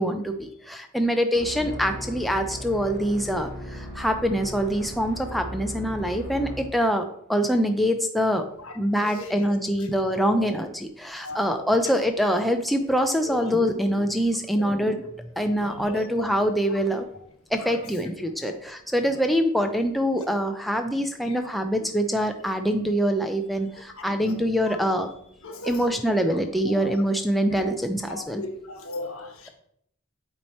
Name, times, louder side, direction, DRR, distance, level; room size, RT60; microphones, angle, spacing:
voice 1, 0.0-8.4 8.8-15.0 15.4-17.0 17.5-25.1 25.6-28.4, equal, ahead, 0.4 m, -24 dB
sound 1, 1.3-6.8, equal, 45° left, 1.8 m, -37 dB
voice 2, 9.0-10.5 11.2-11.7 13.2-13.5 14.6-15.1 15.6-16.4 16.7-16.8 17.6-18.1 18.4-18.6 21.2-21.4 22.2-22.3 23.9-24.4 24.7-24.8 25.4-26.0 26.3-26.4 26.7-27.0 27.5-27.6 28.1-29.5, left 2 dB, 75° left, 1.0 m, -38 dB
8.6 x 3.0 x 4.2 m
head